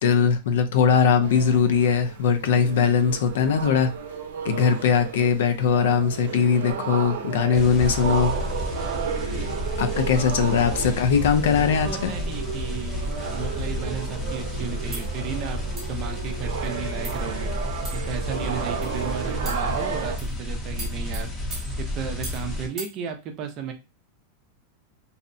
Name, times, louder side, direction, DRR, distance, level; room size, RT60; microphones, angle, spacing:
voice 1, 0.0-3.9 4.4-8.3 9.8-12.1, left 6 dB, 80° left, 0.4 m, -20 dB
sound 1, 1.2-20.2, right 6 dB, 90° right, 0.6 m, -33 dB
sound 2, 7.5-22.7, left 1 dB, 15° left, 0.7 m, -31 dB
voice 2, 11.5-15.6 15.9-17.5 17.9-21.3 21.9-23.7, right 6 dB, 30° right, 0.4 m, -34 dB
sound 3, 14.9-15.1 15.8-16.0 16.6-16.7 17.0-17.3 17.8-18.2 18.8-19.0 19.4-19.7 20.2-20.4 20.8-22.5 22.8-23.0, right 2 dB, 15° right, 0.8 m, -39 dB
2.6 x 2.1 x 2.5 m
supercardioid pair, 165°, 0 cm